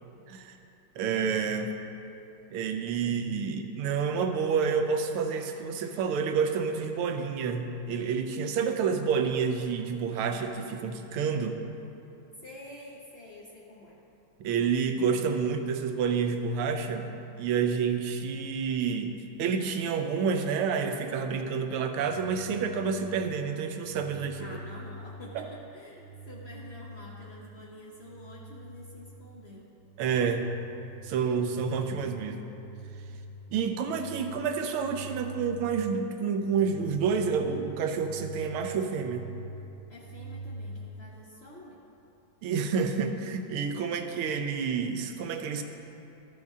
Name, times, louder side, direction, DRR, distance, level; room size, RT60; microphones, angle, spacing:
voice 1, 1.0-1.7 2.5-11.6 14.4-24.5 25.3-25.4 30.0-30.5 31.0-32.5 33.5-39.3 42.4-45.6, right 6 dB, 85° right, 6 dB, 1.6 m, -29 dB
voice 2, 12.4-14.0 24.4-29.7 39.9-41.8, left 1 dB, 70° left, -4 dB, 0.6 m, -48 dB
sound 1, 22.0-40.9, right 2 dB, 70° right, 1.1 m, -45 dB
13.0 x 7.0 x 3.6 m, 2.8 s
omnidirectional pair, 2.3 m